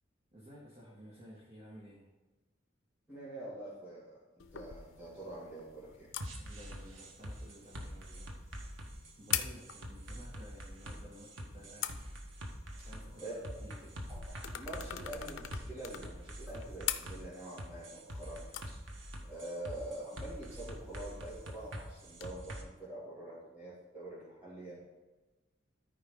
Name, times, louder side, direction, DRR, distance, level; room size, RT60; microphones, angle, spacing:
voice 1, 0.3-2.1 6.3-8.4 9.2-12.0 12.8-14.0, equal, 35° right, -5 dB, 1.7 m, -54 dB
voice 2, 3.1-6.1 13.2-13.3 14.1-14.2 14.6-18.8 19.3-24.8, right 1 dB, 10° right, -9 dB, 2.3 m, -45 dB
clicks lamp, 4.4-22.3, left 10 dB, 80° left, 0.6 m, -45 dB
sound 1, 6.2-22.6, equal, 85° right, 1.3 m, -45 dB
13.0 x 4.7 x 3.9 m, 1.2 s
head